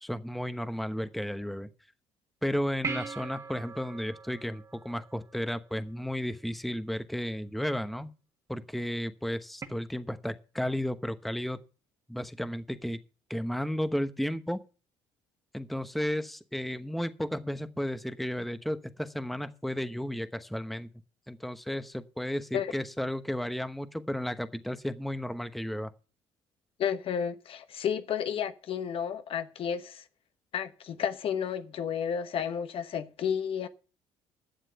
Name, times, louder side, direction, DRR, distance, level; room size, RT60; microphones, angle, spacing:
voice 1, 0.0-1.7 2.4-8.1 8.5-11.6 12.1-13.0 13.3-14.6 15.5-20.9 21.3-25.9, equal, ahead, 1.0 m, -33 dB
sound 1, 2.8-5.5 9.6-9.7, right 4 dB, 30° right, 1.9 m, -39 dB
voice 2, 26.8-30.0 30.5-33.7, left 8 dB, 55° left, 1.1 m, -32 dB
11.5 x 7.4 x 6.8 m
cardioid pair, 90°, 11 cm